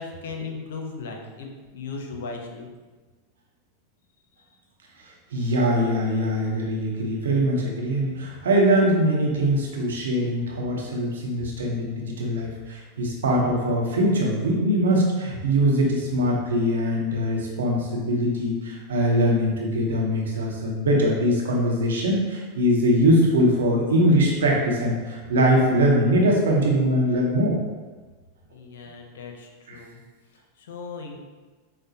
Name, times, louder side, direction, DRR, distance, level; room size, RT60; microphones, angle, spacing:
voice 1, 0.0-1.5 1.7-2.7 28.5-30.0 30.6-31.2, left 4 dB, 75° left, 2 dB, 0.5 m, -37 dB
voice 2, 5.0-27.6 29.7-29.8, equal, 80° right, -2 dB, 0.8 m, -22 dB
5.0 x 2.0 x 2.7 m, 1.3 s
hypercardioid pair, 95°, 0 cm